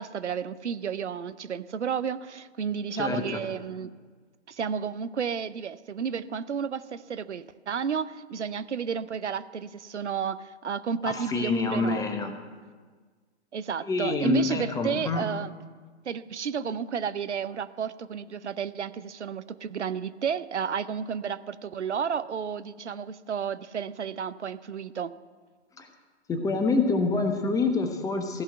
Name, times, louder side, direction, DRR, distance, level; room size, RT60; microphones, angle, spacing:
voice 1, 0.0-3.9 4.5-12.0 13.5-15.5 16.1-25.1, right 7 dB, 80° right, 14 dB, 0.7 m, -32 dB
voice 2, 2.9-3.4 11.0-12.3 13.8-15.3 25.8-25.9 26.3-28.4, left 3 dB, 10° left, 5 dB, 1.0 m, -26 dB
15.5 x 5.6 x 9.1 m, 1.5 s
figure-of-eight pair, 120°, 34 cm